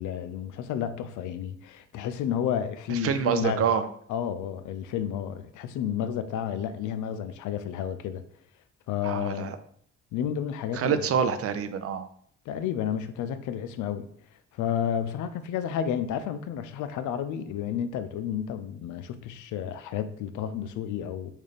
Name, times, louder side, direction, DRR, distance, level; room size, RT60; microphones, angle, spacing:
voice 1, 0.0-3.7 4.1-8.2 8.9-9.5 10.1-11.1 12.5-14.1 14.5-21.3, left 9 dB, 80° left, 0.5 m, -31 dB
voice 2, 2.9-3.9 9.0-9.6 10.7-12.1, right 7 dB, 50° right, 0.4 m, -26 dB
3.2 x 2.6 x 3.9 m
cardioid pair, 90°, 30 cm